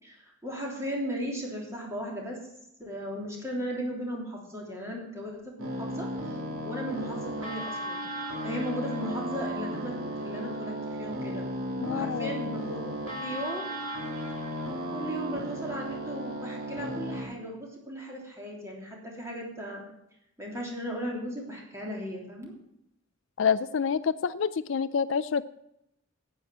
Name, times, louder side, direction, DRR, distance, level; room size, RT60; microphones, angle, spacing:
voice 1, 0.0-2.4 2.8-8.0 8.4-11.4 11.9-12.8 13.0-13.7 14.9-19.8 20.4-22.5, equal, 15° right, -2 dB, 3.2 m, -36 dB
sound 1, 5.6-17.2, equal, 85° right, 3.2 m, -35 dB
voice 2, 11.8-12.3 23.4-25.4, left 6 dB, 60° left, 14 dB, 0.4 m, -27 dB
9.9 x 9.1 x 7.3 m, 0.83 s
head